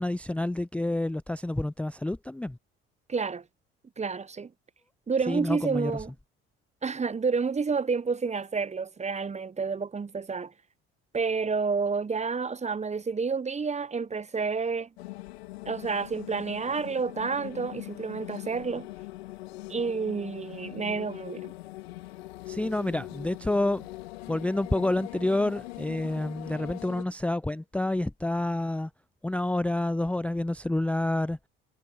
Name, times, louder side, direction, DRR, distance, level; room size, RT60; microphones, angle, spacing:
voice 1, 0.0-2.6 5.3-6.0 22.5-23.9 24.3-28.9 29.2-31.4, left 1 dB, 5° left, 0.5 m, -28 dB
voice 2, 3.1-3.4 4.0-4.5 5.1-6.1 6.8-10.5 11.1-14.9 15.7-18.9 19.7-21.5, right 5 dB, 20° right, 0.9 m, -29 dB
sound 1, 15.0-27.0, left 19 dB, 80° left, 2.8 m, -42 dB
hypercardioid pair, 55°, 31 cm